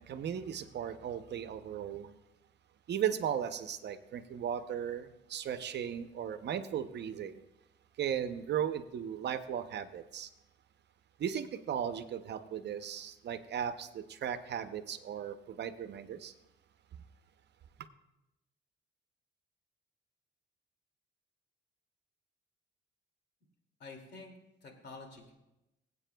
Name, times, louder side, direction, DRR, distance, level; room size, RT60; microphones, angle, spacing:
voice 1, 0.0-2.2 2.9-7.3 8.0-10.3 11.2-16.3, right 9 dB, 60° right, 10 dB, 0.7 m, -36 dB
voice 2, 23.8-24.3 24.6-25.3, left 3 dB, 60° left, 2 dB, 2.4 m, -48 dB
22.5 x 8.3 x 2.3 m, 0.93 s
cardioid pair, 90°, 20 cm